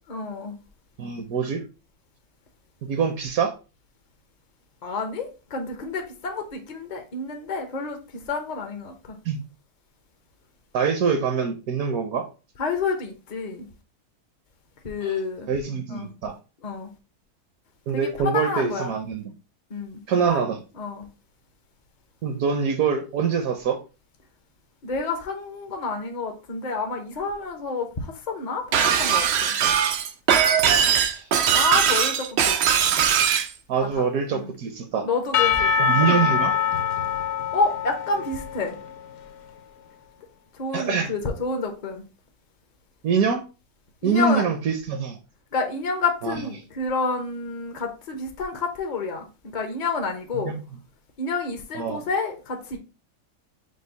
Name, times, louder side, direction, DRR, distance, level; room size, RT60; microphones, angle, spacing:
voice 1, 0.1-0.6 4.8-9.2 12.6-13.7 14.8-15.5 15.9-16.1 16.6-16.9 17.9-18.9 19.7-20.4 20.8-21.1 24.8-29.5 31.5-32.6 32.9-33.0 34.3-34.5 35.0-36.0 37.5-38.8 40.6-42.0 44.0-44.4 45.5-50.5 51.2-52.8, left 4 dB, 50° left, 0.5 m, -29 dB
voice 2, 1.0-1.6 2.9-3.5 9.2-9.4 10.7-12.3 15.0-15.2 15.5-16.4 17.9-19.3 20.1-20.6 22.2-23.8 31.0-31.3 33.7-35.1 35.8-36.5 40.7-41.1 43.0-43.4 44.0-45.2 46.2-46.4 50.3-50.6 51.7-52.0, right 6 dB, 70° right, 1.0 m, -24 dB
Shatter, 28.7-33.5, right 8 dB, 90° right, 0.5 m, -20 dB
Percussion / Church bell, 35.3-39.3, left 7 dB, 65° left, 1.0 m, -24 dB
5.2 x 2.0 x 3.9 m
omnidirectional pair, 1.7 m